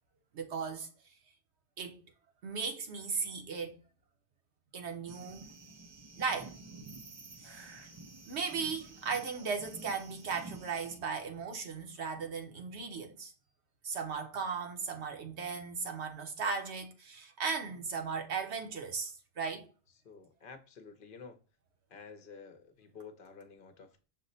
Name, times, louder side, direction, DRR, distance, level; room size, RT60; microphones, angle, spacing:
voice 1, 0.3-0.9 1.8-2.0 2.4-3.8 4.7-5.5 6.1-6.5 7.4-7.7 8.3-13.3 13.8-19.7, right 5 dB, 85° right, 1.1 m, -37 dB
sound 1, 5.1-11.0, right 3 dB, 35° right, 0.5 m, -50 dB
voice 2, 20.0-21.4 21.9-24.0, left 5 dB, 55° left, 0.8 m, -51 dB
5.8 x 2.1 x 3.9 m
omnidirectional pair, 1.1 m